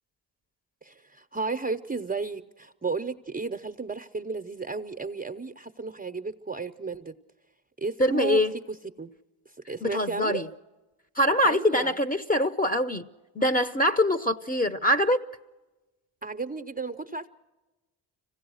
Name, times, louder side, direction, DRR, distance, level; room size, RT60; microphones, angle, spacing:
voice 1, 0.8-7.2 7.8-8.4 8.7-9.1 9.7-10.4 11.4-12.0 16.2-17.3, right 4 dB, 20° right, 0.6 m, -33 dB
voice 2, 8.0-8.5 9.8-10.5 11.2-13.1 13.3-15.2, left 1 dB, 15° left, 0.8 m, -24 dB
25.5 x 16.5 x 6.3 m
supercardioid pair, 60°, 49 cm